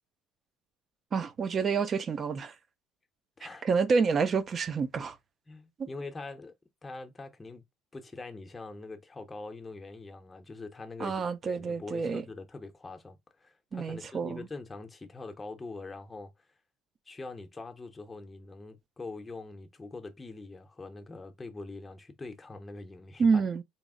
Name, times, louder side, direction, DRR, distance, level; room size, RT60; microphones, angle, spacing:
voice 1, 1.1-2.5 3.6-5.2 5.8-5.9 11.0-12.2 13.7-14.5 23.2-23.6, right 5 dB, 30° right, 0.4 m, -28 dB
voice 2, 3.4-3.7 5.5-6.5 6.8-7.7 7.9-16.3 17.1-23.4, left 3 dB, 15° left, 0.6 m, -43 dB
4.0 x 2.0 x 3.6 m
cardioid pair, 145°, 0 cm